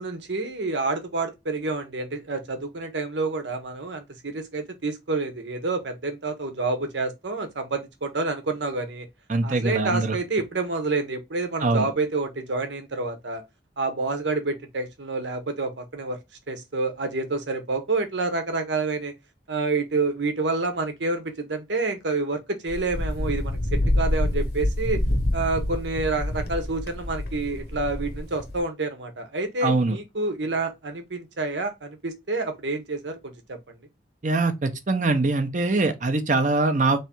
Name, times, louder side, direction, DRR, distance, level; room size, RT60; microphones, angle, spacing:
voice 1, 0.0-9.1 9.4-13.4 13.8-16.2 16.5-19.1 19.5-25.0 25.3-33.6, right 3 dB, 90° right, 1.0 m, -28 dB
voice 2, 9.3-10.2 11.6-11.9 29.6-30.0 34.2-37.0, right 3 dB, 45° right, 0.6 m, -23 dB
Wind, 22.7-28.6, left 1 dB, 60° left, 0.9 m, -27 dB
3.6 x 3.2 x 4.4 m
head